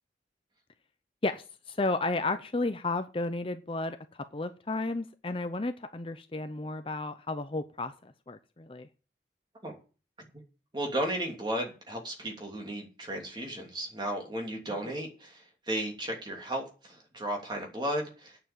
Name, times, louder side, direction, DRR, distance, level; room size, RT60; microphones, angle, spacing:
voice 1, 1.2-8.9, left 2 dB, 30° left, 9 dB, 0.7 m, -33 dB
voice 2, 10.7-18.4, right 1 dB, 25° right, 1 dB, 2.9 m, -34 dB
9.0 x 7.0 x 8.6 m, 0.35 s
head